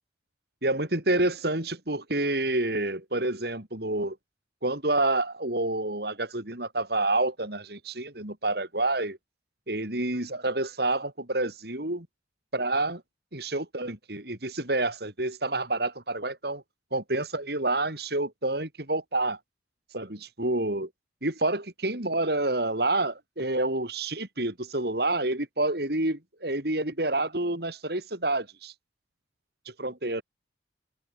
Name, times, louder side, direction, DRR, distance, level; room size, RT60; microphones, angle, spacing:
voice 1, 0.6-4.2 4.6-9.2 9.7-12.1 12.5-13.0 13.3-16.6 16.9-19.4 19.9-20.9 21.2-28.7 29.7-30.2, right 2 dB, 55° right, 3.8 m, -28 dB
head